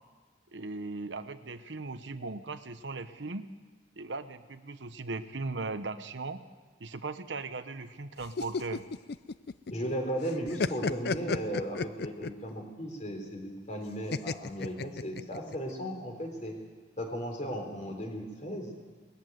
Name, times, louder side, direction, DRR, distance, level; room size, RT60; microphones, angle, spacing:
voice 1, 0.5-3.4 4.0-6.4 6.8-8.8, right 3 dB, 75° right, 10 dB, 1.0 m, -38 dB
sound 1, 8.2-9.9 10.2-12.5 14.1-15.6, left 4 dB, 60° left, 0.5 m, -33 dB
voice 2, 9.7-16.6 17.0-18.7, equal, 40° left, 3 dB, 3.7 m, -36 dB
20.0 x 14.0 x 9.3 m, 1.5 s
head